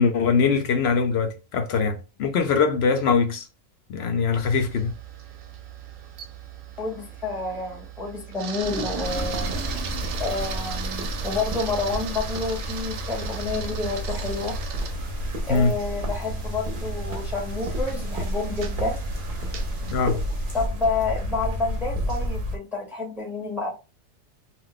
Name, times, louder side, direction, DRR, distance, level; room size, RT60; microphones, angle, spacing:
voice 1, 0.0-3.5 3.9-4.9 15.5-15.7 19.9-20.2, left 5 dB, 65° left, 0.7 m, -22 dB
Camera, 4.3-19.9, right 8 dB, 90° right, 1.0 m, -39 dB
voice 2, 6.8-9.5 10.2-14.6 15.5-19.0 20.5-23.8, left 3 dB, ahead, 0.6 m, -29 dB
sound 1, 8.6-20.7, right 1 dB, 25° right, 0.9 m, -41 dB
sound 2, 9.0-22.6, equal, 50° right, 0.7 m, -31 dB
2.3 x 2.1 x 3.8 m
omnidirectional pair, 1.4 m